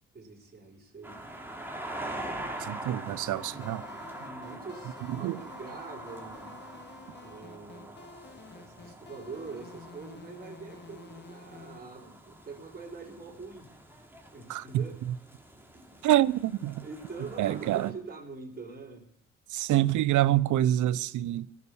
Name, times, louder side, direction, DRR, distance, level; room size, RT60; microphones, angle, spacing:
voice 1, 0.1-1.2 2.9-3.2 3.4-3.6 4.2-6.5 7.2-8.0 8.5-13.7 14.3-15.0 15.7-16.0 16.8-19.1, right 4 dB, 30° right, 4.4 m, -44 dB
sound 1, 1.0-17.9, right 1 dB, 5° right, 2.9 m, -44 dB
voice 2, 2.6-3.8 5.2-5.4 14.5-14.6 16.0-16.9 17.4-17.9 19.5-21.5, right 13 dB, 75° right, 0.6 m, -26 dB
sound 2, 3.1-11.8, left 4 dB, 35° left, 1.3 m, -51 dB
17.0 x 7.1 x 8.4 m
cardioid pair, 75°, 30 cm